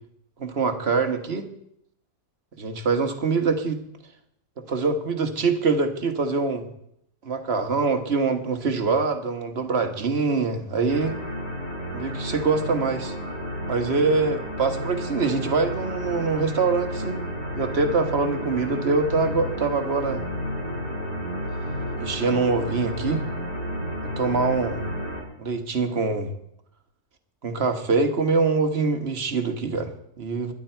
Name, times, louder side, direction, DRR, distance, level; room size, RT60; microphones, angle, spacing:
voice 1, 0.4-1.5 2.6-3.8 4.6-6.7 7.2-11.1 11.9-13.1 13.7-17.2 17.6-20.2 22.0-23.2 24.2-24.8 25.4-26.3 27.4-30.5, right 4 dB, 40° right, 6 dB, 1.5 m, -24 dB
sound 1, 10.9-25.2, equal, 85° left, 5.0 m, -31 dB
21.0 x 11.0 x 4.5 m, 0.75 s
omnidirectional pair, 1.8 m